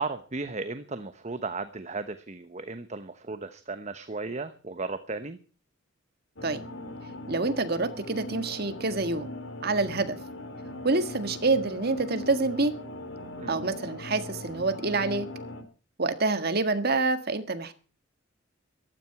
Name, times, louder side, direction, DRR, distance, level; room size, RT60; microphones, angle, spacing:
voice 1, 0.0-5.4 13.4-13.5, right 3 dB, 35° right, 11 dB, 1.0 m, -35 dB
sound 1, 6.3-15.6, left 1 dB, 70° left, 3.3 m, -40 dB
voice 2, 7.3-9.3 9.6-10.2 10.8-12.7 13.5-15.3 16.0-17.7, right 3 dB, 50° right, 10 dB, 1.8 m, -27 dB
15.0 x 13.0 x 6.0 m, 0.37 s
head